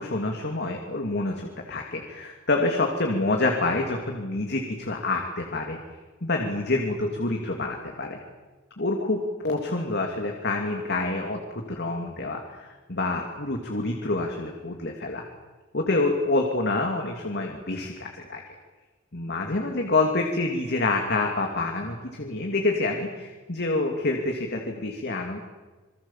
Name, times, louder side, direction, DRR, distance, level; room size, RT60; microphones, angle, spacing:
voice 1, 0.0-5.8 6.2-8.2 8.8-15.2 15.7-18.4 19.1-25.4, left 2 dB, 55° left, 2 dB, 2.9 m, -27 dB
27.5 x 23.5 x 7.5 m, 1.3 s
head